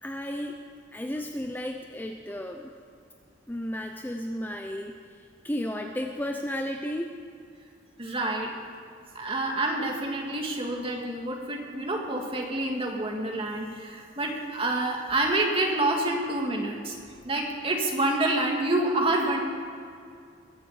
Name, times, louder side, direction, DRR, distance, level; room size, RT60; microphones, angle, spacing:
voice 1, 0.0-0.5 0.9-2.7 3.5-5.0 5.4-7.1, equal, 10° left, 3 dB, 0.6 m, -33 dB
voice 2, 8.0-8.5 9.1-17.0 17.2-19.4, right 2 dB, 30° right, 0 dB, 2.3 m, -27 dB
21.5 x 7.7 x 8.2 m, 2.4 s
head